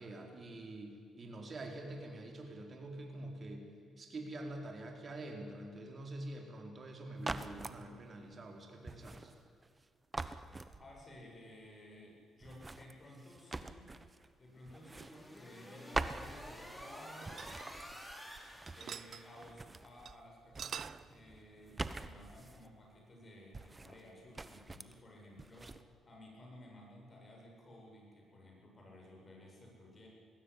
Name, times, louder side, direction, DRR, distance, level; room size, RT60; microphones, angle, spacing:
voice 1, 0.0-3.7 4.0-9.3, right 1 dB, 40° right, 2 dB, 4.5 m, -46 dB
sound 1, 7.2-7.8 8.9-9.8 10.1-11.2 12.4-14.3 14.7-15.7 15.9-16.9 17.2-19.1 19.3-20.2 20.5-22.7 23.5-24.1 24.3-25.0 25.4-25.8, right 3 dB, 20° right, 1.1 m, -44 dB
voice 2, 10.8-13.9 14.4-17.4 18.7-30.1, left 1 dB, 35° left, 0 dB, 7.5 m, -55 dB
sound 2, 14.5-19.5, equal, 5° left, 3.5 m, -51 dB
sound 3, 16.7-18.4 18.7-19.3 19.6-19.7 20.1-20.2 20.4-21.1, right 8 dB, 55° right, 0.6 m, -46 dB
21.0 x 16.0 x 10.0 m, 2.2 s
cardioid pair, 90°, 0 cm